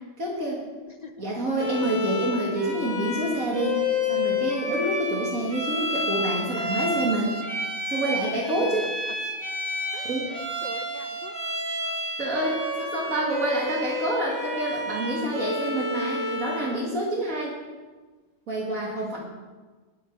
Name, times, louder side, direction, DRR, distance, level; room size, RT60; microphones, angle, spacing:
voice 1, 0.2-0.7 1.2-3.8 4.1-7.4 7.9-8.9 10.0-10.3 12.2-17.6 18.5-19.2, right 1 dB, 65° right, -3 dB, 2.6 m, -27 dB
Bowed string instrument, 1.6-16.8, left 2 dB, 15° right, 2.4 m, -30 dB
voice 2, 8.5-8.9 9.9-11.3 18.7-19.2, left 4 dB, 50° left, 7 dB, 0.5 m, -42 dB
19.5 x 8.7 x 4.7 m, 1.3 s
omnidirectional pair, 1.5 m